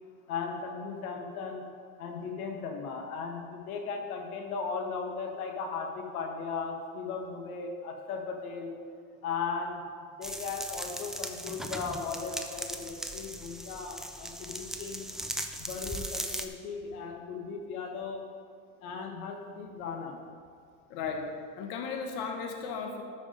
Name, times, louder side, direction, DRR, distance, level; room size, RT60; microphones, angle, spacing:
voice 1, 0.3-1.7 2.0-8.7 9.2-9.8 10.2-15.1 15.6-18.2 18.8-20.2, left 5 dB, 85° left, 2 dB, 1.5 m, -37 dB
sound 1, 10.2-16.5, right 1 dB, ahead, 0.3 m, -38 dB
voice 2, 20.9-21.3 21.6-23.0, left 5 dB, 60° left, 2 dB, 1.3 m, -35 dB
12.5 x 5.1 x 5.2 m, 2.1 s
supercardioid pair, 110°, 43 cm